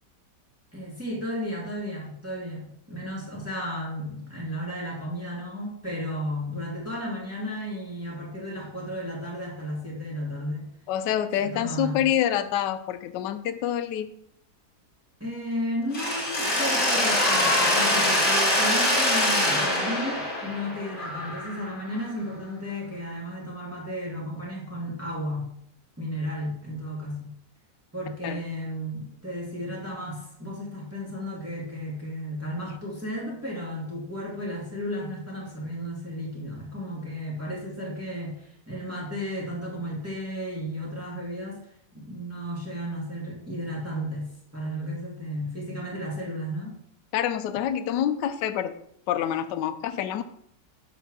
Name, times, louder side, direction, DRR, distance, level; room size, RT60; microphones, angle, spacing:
voice 1, 0.7-10.7 11.4-12.1 15.2-25.5 26.0-27.3 27.9-41.6 41.9-46.8, equal, 10° right, -5 dB, 1.9 m, -33 dB
voice 2, 10.9-14.1 28.2-28.4 47.1-48.7 49.1-50.2, left 10 dB, 75° left, 10 dB, 1.2 m, -27 dB
Mechanisms, 15.9-21.8, left 1 dB, 30° left, 2.2 m, -24 dB
6.9 x 4.4 x 6.0 m, 0.70 s
omnidirectional pair, 1.9 m